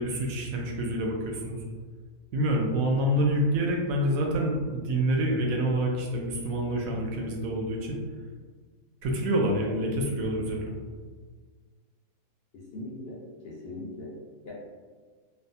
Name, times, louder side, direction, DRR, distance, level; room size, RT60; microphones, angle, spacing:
voice 1, 0.0-1.6 2.3-8.0 9.0-10.7, right 1 dB, 75° right, 0 dB, 1.0 m, -27 dB
voice 2, 12.5-13.2 13.4-14.1 14.5-14.6, left 2 dB, 60° left, -5 dB, 0.7 m, -40 dB
3.3 x 2.1 x 2.5 m, 1.5 s
omnidirectional pair, 1.5 m